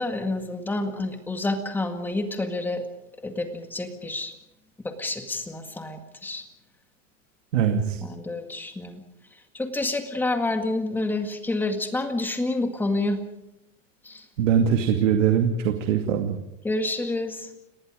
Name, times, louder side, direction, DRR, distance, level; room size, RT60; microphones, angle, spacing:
voice 1, 0.0-2.8 3.2-4.3 4.8-6.4 8.0-9.0 9.5-13.2 14.0-14.3 16.6-17.5, left 2 dB, 5° left, 6 dB, 1.9 m, -28 dB
voice 2, 7.5-8.0 14.4-16.4, right 8 dB, 75° right, 5 dB, 2.4 m, -22 dB
29.5 x 18.5 x 5.1 m, 0.87 s
supercardioid pair, 160°, 38 cm